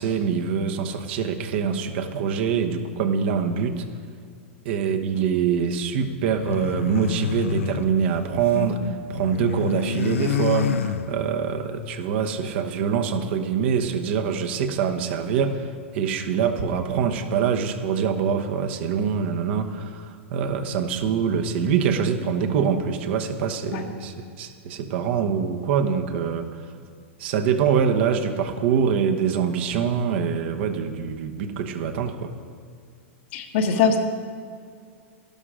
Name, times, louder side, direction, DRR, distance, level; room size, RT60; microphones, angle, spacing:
voice 1, 0.0-3.8 4.6-8.8 9.1-26.6 27.2-32.3, right 7 dB, 60° right, 5 dB, 1.1 m, -24 dB
sound 1, 6.2-8.7 9.0-11.5, left 7 dB, 85° left, 0.6 m, -28 dB
voice 2, 8.5-8.9 23.7-23.8 33.3-34.0, left 5 dB, 60° left, 4 dB, 1.4 m, -23 dB
12.0 x 11.0 x 5.0 m, 2.2 s
hypercardioid pair, 115°, 7 cm